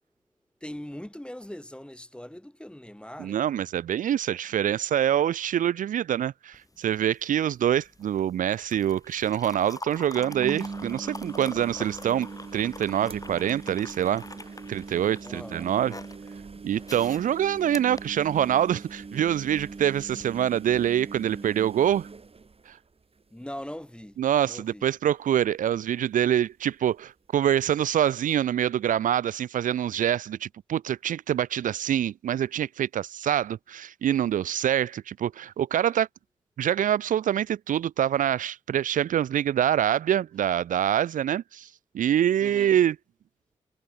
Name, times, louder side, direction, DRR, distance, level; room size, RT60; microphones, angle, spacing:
voice 1, 0.6-3.4 15.2-15.7 23.3-24.9 42.4-42.8, left 1 dB, 5° left, 2.8 m, -41 dB
voice 2, 3.2-12.3 12.5-14.2 14.7-15.9 16.6-22.1 22.7-22.8 24.2-36.1 36.6-41.7 41.9-43.0, right 10 dB, 80° right, 0.5 m, -25 dB
sound 1, 6.5-18.8 20.1-20.3, left 2 dB, 25° left, 5.4 m, -45 dB
sound 2, 9.1-9.2 10.1-23.2 23.6-24.0 24.3-24.4 26.2-26.3, right 4 dB, 45° right, 2.1 m, -41 dB
cardioid pair, 45°, 13 cm